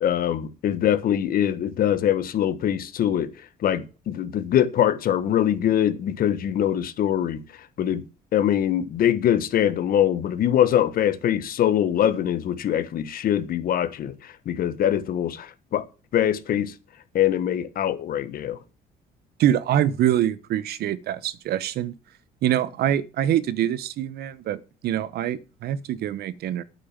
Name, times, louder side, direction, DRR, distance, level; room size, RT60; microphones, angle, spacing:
voice 1, 0.0-3.3 3.6-7.4 7.8-8.0 8.3-15.8 16.1-16.7 17.1-18.6, left 10 dB, 60° left, 1.3 m, -23 dB
voice 2, 19.4-21.9 22.4-26.6, right 11 dB, 70° right, 1.0 m, -24 dB
9.0 x 8.6 x 7.4 m
cardioid pair, 110°, 17 cm